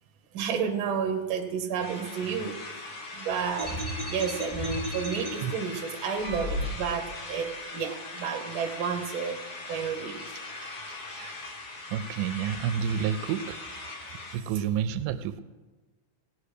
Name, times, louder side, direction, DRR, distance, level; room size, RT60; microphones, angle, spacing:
voice 1, 0.3-9.4 9.7-10.4, right 6 dB, 55° right, 5 dB, 1.5 m, -31 dB
sound 1, 1.8-14.4, left 3 dB, 60° left, 1.0 m, -41 dB
sound 2, 3.6-5.3 6.2-7.1, equal, 15° left, 3.2 m, -34 dB
voice 2, 11.9-13.6 14.3-15.4, right 9 dB, 85° right, 12 dB, 2.0 m, -29 dB
17.5 x 8.5 x 5.0 m, 1.2 s
omnidirectional pair, 3.6 m